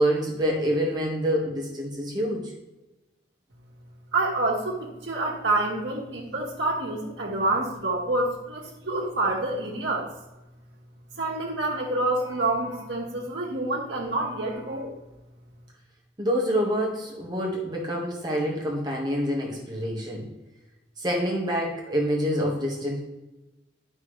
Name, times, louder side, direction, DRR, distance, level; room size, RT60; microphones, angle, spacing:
voice 1, 0.0-2.5 16.2-20.3 21.0-23.0, equal, 25° right, -2 dB, 1.6 m, -26 dB
voice 2, 4.1-10.1 11.2-14.9, right 2 dB, 90° right, -7 dB, 1.6 m, -27 dB
10.0 x 6.0 x 3.2 m, 1.0 s
head